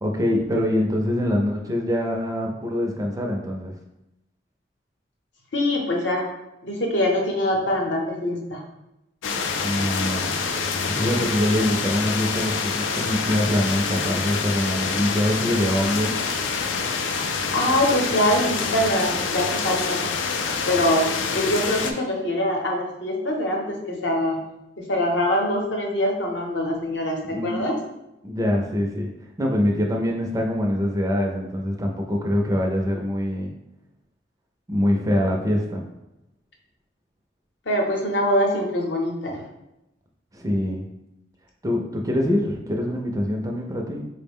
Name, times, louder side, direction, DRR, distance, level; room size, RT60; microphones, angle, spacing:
voice 1, 0.0-3.8 9.6-10.4 10.9-16.1 27.3-27.7 28.2-29.1 29.4-33.5 34.7-35.8 40.3-40.8 41.6-44.1, left 1 dB, 20° right, 1 dB, 0.4 m, -24 dB
voice 2, 5.5-6.3 6.6-8.6 17.5-20.0 20.7-24.4 24.9-27.7 37.7-39.4, left 1 dB, 70° left, 0 dB, 0.8 m, -23 dB
sound 1, 9.2-21.9, left 5 dB, 90° left, 0.4 m, -26 dB
4.3 x 2.0 x 3.5 m, 0.90 s
head